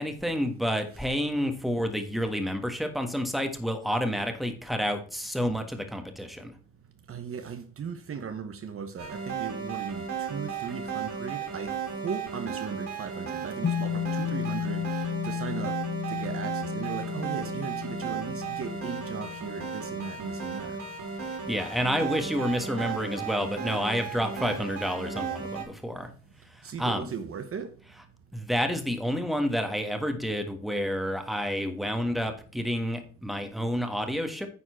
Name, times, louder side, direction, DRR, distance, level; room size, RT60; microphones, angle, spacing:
voice 1, 0.0-6.5 21.5-26.1 26.8-27.1 28.3-34.5, equal, ahead, 1.5 m, -29 dB
voice 2, 7.1-15.8 16.1-20.8 26.6-27.7, right 6 dB, 45° right, 1.0 m, -37 dB
sound 1, 9.0-25.6, right 6 dB, 65° right, 3.6 m, -35 dB
sound 2, 13.6-22.1, left 9 dB, 35° left, 0.6 m, -34 dB
9.6 x 4.3 x 5.6 m
cardioid pair, 90°, 30 cm